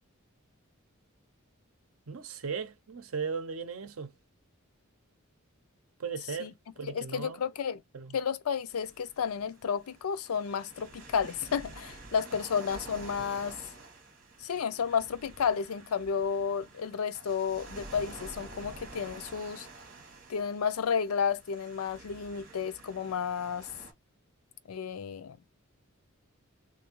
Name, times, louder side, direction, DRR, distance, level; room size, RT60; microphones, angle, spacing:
voice 1, 2.1-4.1 6.0-6.5 6.8-7.4 7.9-8.2, right 5 dB, 75° right, 0.7 m, -37 dB
voice 2, 6.9-7.8 8.1-13.6 14.4-19.7 20.3-23.7 24.7-25.4, left 6 dB, 85° left, 0.4 m, -32 dB
sound 1, 8.7-23.9, right 3 dB, 40° right, 1.4 m, -49 dB
3.4 x 2.7 x 2.9 m
head